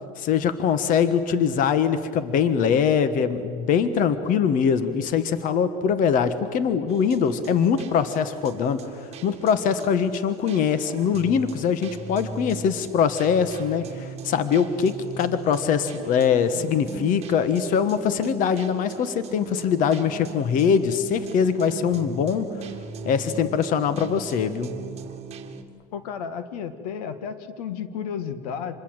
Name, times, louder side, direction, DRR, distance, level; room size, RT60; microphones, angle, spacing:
voice 1, 0.2-22.7 23.0-24.8, left 7 dB, 45° left, 12 dB, 1.3 m, -23 dB
sound 1, 6.9-25.6, right 5 dB, 35° right, 2.0 m, -39 dB
voice 2, 25.9-28.7, left 7 dB, 80° left, 10 dB, 1.8 m, -32 dB
27.0 x 21.0 x 8.0 m, 2.3 s
supercardioid pair, 125°, 19 cm